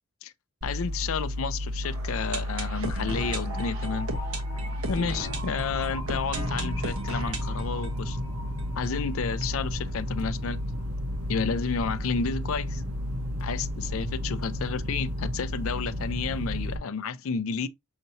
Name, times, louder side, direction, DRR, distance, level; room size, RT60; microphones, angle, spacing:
voice 1, 0.6-4.1 4.9-8.2 8.8-10.6 11.3-12.8 13.4-17.7, left 5 dB, 65° left, 0.4 m, -31 dB
sound 1, 0.6-16.8, left 1 dB, 90° right, 1.4 m, -32 dB
sound 2, 1.8-9.6 9.9-10.0 10.2-10.3 10.8-10.9, right 1 dB, 75° right, 1.3 m, -36 dB
6.5 x 2.8 x 2.7 m
head